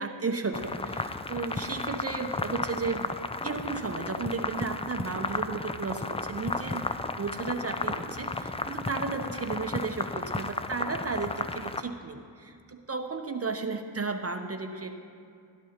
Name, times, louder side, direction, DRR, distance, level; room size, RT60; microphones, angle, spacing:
voice 1, 0.0-6.9 7.2-15.0, right 4 dB, 30° right, 6 dB, 0.7 m, -34 dB
sound 1, 0.5-11.8, left 3 dB, 15° left, 0.4 m, -34 dB
17.5 x 10.5 x 2.9 m, 2.4 s
cardioid pair, 50°, 47 cm